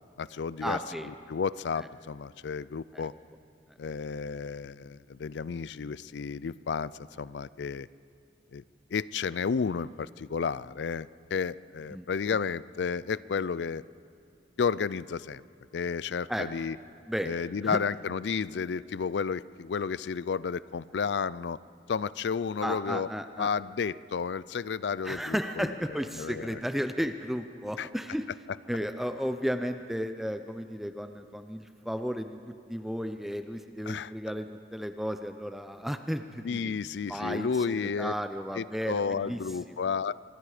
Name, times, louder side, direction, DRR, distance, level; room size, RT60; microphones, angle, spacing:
voice 1, 0.0-3.1 3.8-7.9 8.5-8.6 8.9-13.8 14.6-15.4 15.7-16.8 17.2-21.6 21.9-23.1 23.4-25.7 26.1-26.6 27.8-27.9 33.8-34.1 36.4-38.1 38.5-40.1, left 5 dB, 85° left, 19 dB, 0.4 m, -32 dB
voice 2, 0.6-1.1 2.9-3.1 11.9-12.1 16.3-16.5 17.1-17.3 17.6-17.8 22.6-23.5 25.0-28.2 28.7-32.4 32.7-36.7 37.1-39.4, equal, ahead, 8 dB, 0.6 m, -33 dB
26.0 x 21.5 x 5.0 m, 2.4 s
head